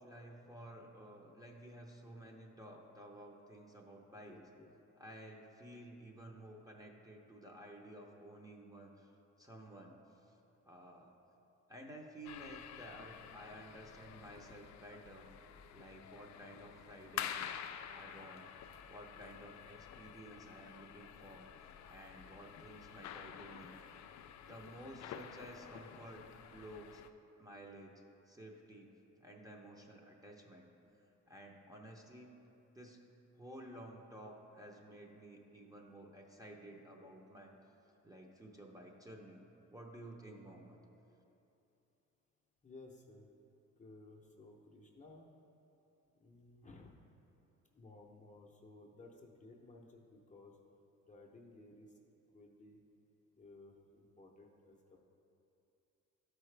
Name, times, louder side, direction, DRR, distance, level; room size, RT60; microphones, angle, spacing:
voice 1, 0.0-4.4 5.0-9.1 9.4-10.0 10.3-10.4 10.6-11.1 11.7-15.3 15.7-17.4 17.9-18.5 18.9-21.5 21.8-23.8 24.4-26.2 26.5-27.0 27.4-28.9 29.2-30.7 31.3-32.3 32.7-33.0 33.4-37.5 38.0-39.4 39.7-40.8, right 1 dB, 10° right, 0 dB, 0.8 m, -53 dB
voice 2, 4.1-4.7 42.6-43.3 43.8-45.3 46.2-47.0 47.7-50.5 51.1-51.9 52.3-52.8 53.4-55.0, left 2 dB, 25° left, -1 dB, 0.8 m, -57 dB
sound 1, 12.2-27.1, left 9 dB, 65° left, 0.4 m, -49 dB
12.0 x 4.8 x 3.3 m, 2.9 s
cardioid pair, 90°, 30 cm